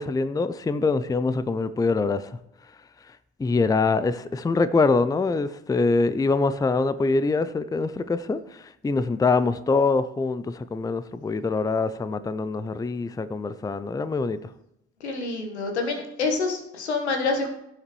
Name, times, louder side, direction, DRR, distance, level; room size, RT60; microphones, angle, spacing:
voice 1, 0.0-2.3 3.4-14.4, left 3 dB, 10° left, 0.5 m, -24 dB
voice 2, 15.0-17.5, left 3 dB, 85° left, 1.5 m, -27 dB
17.0 x 7.2 x 3.2 m
figure-of-eight pair, 55°, 33 cm